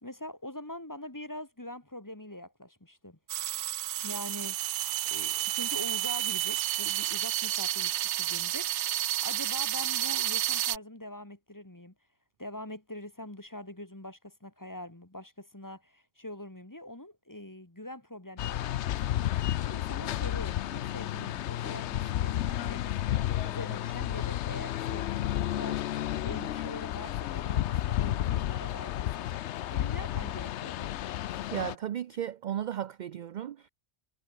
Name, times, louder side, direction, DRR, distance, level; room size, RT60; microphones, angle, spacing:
voice 1, 0.0-3.2 4.0-4.6 5.1-8.9 9.2-11.9 12.4-18.8 19.6-23.0 23.4-25.8 26.2-29.3 29.7-30.9, left 1 dB, 15° left, 1.9 m, -43 dB
sound 1, 3.3-10.8, right 13 dB, 85° right, 0.9 m, -31 dB
sound 2, 18.4-31.8, left 12 dB, 80° left, 0.9 m, -32 dB
voice 2, 31.5-33.7, right 10 dB, 60° right, 0.5 m, -35 dB
omnidirectional pair, 1.1 m